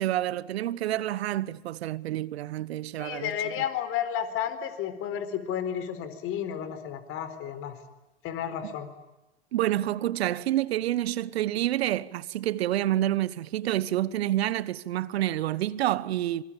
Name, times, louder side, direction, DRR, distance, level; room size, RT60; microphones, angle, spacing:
voice 1, 0.0-3.4 9.5-16.4, right 13 dB, 65° right, 1.0 m, -28 dB
voice 2, 3.0-7.8 8.2-8.9, left 9 dB, 40° left, 4.3 m, -32 dB
26.5 x 24.5 x 8.9 m
hypercardioid pair, 100°, 33 cm